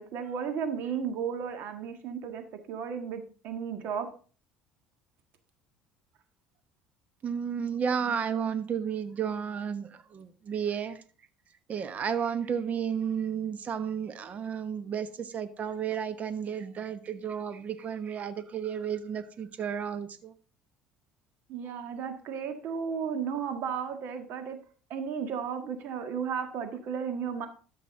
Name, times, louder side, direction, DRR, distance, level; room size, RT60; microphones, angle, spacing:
voice 1, 0.0-4.1 21.5-24.6 24.9-27.5, right 7 dB, 60° right, 7 dB, 1.7 m, -34 dB
voice 2, 7.2-11.0 11.7-20.3, right 7 dB, 40° right, 12 dB, 1.1 m, -32 dB
12.5 x 6.0 x 3.7 m, 0.39 s
hypercardioid pair, 70°, 4 cm